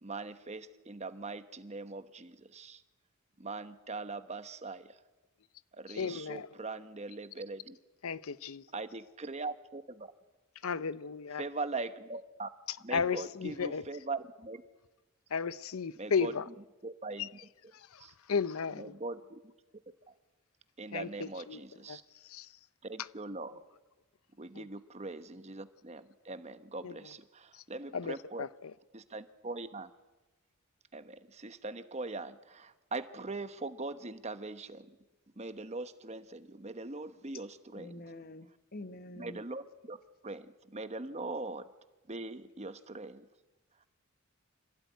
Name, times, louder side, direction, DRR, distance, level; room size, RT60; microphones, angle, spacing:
voice 1, 0.0-2.8 3.4-5.0 5.7-7.8 8.7-10.1 11.4-12.5 12.8-14.6 16.0-16.3 16.8-17.3 18.0-18.1 18.8-19.4 20.1-20.2 20.8-22.0 22.8-23.6 24.4-28.4 28.9-29.9 30.9-35.0 35.4-37.9 39.2-40.0 40.2-41.7 42.1-43.3, right 3 dB, 30° right, 1.1 m, -41 dB
voice 2, 5.9-6.5 8.0-8.6 10.6-11.4 12.9-13.8 15.3-16.4 17.2-17.3 17.7-19.0 20.9-21.6 21.9-22.5 24.5-24.7 26.8-26.9 27.5-27.6 27.9-28.7, left 5 dB, 90° left, 0.7 m, -35 dB
voice 3, 37.7-39.4, left 1 dB, 45° left, 1.0 m, -46 dB
25.5 x 16.5 x 9.3 m
head